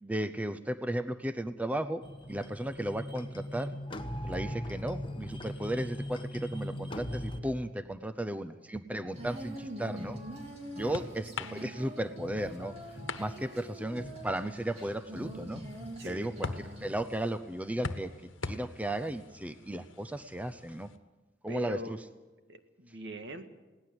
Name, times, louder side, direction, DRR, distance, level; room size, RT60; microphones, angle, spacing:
voice 1, 0.0-2.0 2.3-3.7 4.2-10.2 10.7-12.7 13.2-15.6 16.0-18.1 18.4-20.9 21.4-22.0, right 1 dB, 10° right, 11 dB, 0.6 m, -35 dB
sound 1, 2.0-7.4, equal, 25° left, 1.2 m, -39 dB
voice 2, 7.3-7.7 9.0-9.3 11.0-11.1 16.0-16.3 21.5-22.0 22.5-23.5, right 1 dB, 65° right, 8 dB, 1.8 m, -44 dB
Female singing, 9.1-16.9, equal, 30° right, 3.4 m, -44 dB
sound 2, 9.9-21.0, left 3 dB, 75° left, 1.3 m, -44 dB
21.5 x 18.0 x 7.8 m, 1.2 s
head